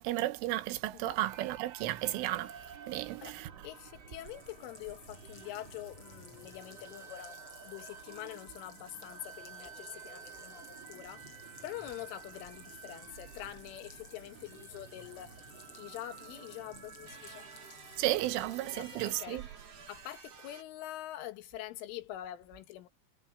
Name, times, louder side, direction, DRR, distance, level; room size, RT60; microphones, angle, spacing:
voice 1, 0.0-2.5 2.9-3.5 18.0-19.4, right 16 dB, 90° right, 3.5 m, -33 dB
sound 1, 1.1-20.6, right 6 dB, 40° right, 3.3 m, -51 dB
voice 2, 3.6-11.3 11.6-15.4 15.8-17.5 18.7-19.4 19.9-22.9, left 13 dB, 85° left, 3.9 m, -45 dB
sound 2, 4.1-19.3, left 2 dB, 30° left, 6.4 m, -56 dB
omnidirectional pair, 5.5 m